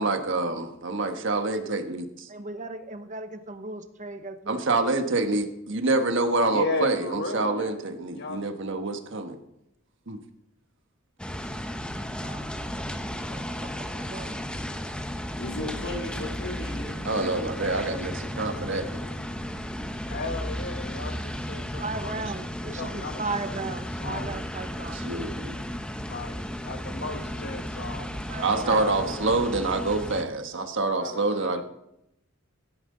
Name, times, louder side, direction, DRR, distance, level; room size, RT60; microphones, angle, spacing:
voice 1, 0.0-2.3 4.5-9.4 10.1-10.2 17.0-19.0 24.9-25.6 28.4-31.6, right 2 dB, 65° right, 6 dB, 1.3 m, -27 dB
voice 2, 2.3-5.1 12.2-14.4 21.8-25.0 28.0-28.9, right 3 dB, 35° right, 8 dB, 1.0 m, -37 dB
voice 3, 6.5-7.8 8.1-8.5 20.1-22.2 22.7-23.2 23.5-24.4 26.0-29.5 30.8-31.6, left 3 dB, 55° left, 6 dB, 1.5 m, -35 dB
sound 1, 11.2-30.2, equal, 5° left, 0.8 m, -34 dB
voice 4, 15.4-17.1 17.4-18.1 18.4-18.7 19.0-19.4 27.2-27.6, left 2 dB, 85° left, -1 dB, 3.6 m, -39 dB
16.5 x 9.4 x 3.9 m, 0.80 s
head